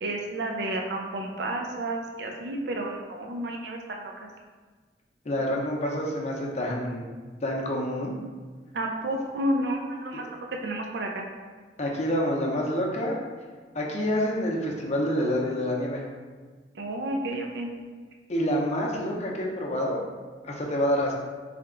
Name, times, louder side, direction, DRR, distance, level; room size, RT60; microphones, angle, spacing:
voice 1, 0.0-4.3 8.7-10.4 10.6-11.3 16.7-17.7, right 1 dB, 65° right, 1 dB, 0.4 m, -31 dB
voice 2, 5.3-7.1 7.4-8.2 10.1-10.2 11.8-13.2 13.7-16.0 18.3-20.0 20.4-21.1, equal, 40° left, -1 dB, 0.6 m, -27 dB
3.3 x 2.8 x 3.8 m, 1.4 s
head